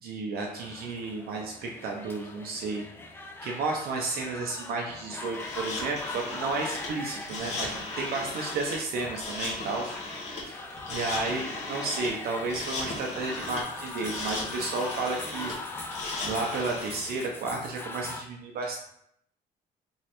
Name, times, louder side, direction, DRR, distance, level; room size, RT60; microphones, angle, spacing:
voice 1, 0.0-2.9 3.1-10.6 10.9-15.9 16.2-18.8, right 3 dB, 65° right, 0 dB, 0.6 m, -32 dB
sound 1, 0.6-18.2, left 2 dB, 15° left, 0.4 m, -41 dB
sound 2, 5.3-17.2, left 2 dB, 45° left, 1.3 m, -37 dB
3.6 x 3.1 x 3.0 m, 0.72 s
cardioid pair, 110°, 17 cm